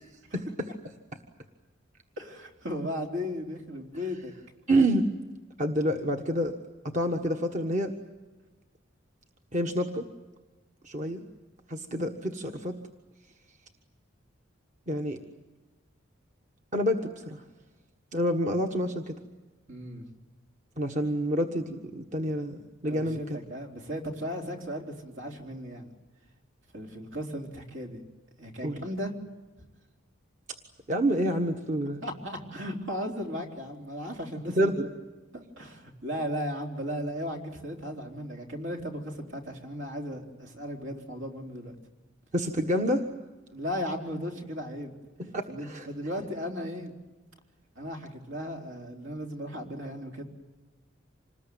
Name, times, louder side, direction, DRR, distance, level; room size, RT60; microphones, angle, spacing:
voice 1, 0.3-0.7 4.7-5.1 5.6-6.5 6.8-7.9 9.5-10.1 10.8-11.2 11.7-12.8 14.9-15.2 16.7-17.4 18.1-19.1 20.8-23.4 28.6-28.8 30.9-32.0 34.6-34.8 42.3-43.0 45.3-45.9, right 1 dB, 40° right, 4 dB, 1.5 m, -28 dB
voice 2, 2.2-4.3 19.7-20.1 22.8-25.9 26.7-28.0 28.4-29.1 32.0-34.7 35.3-41.7 43.5-44.9 45.5-46.9 47.8-50.2, equal, 70° right, 2 dB, 3.9 m, -36 dB
27.0 x 20.5 x 9.4 m, 1.2 s
head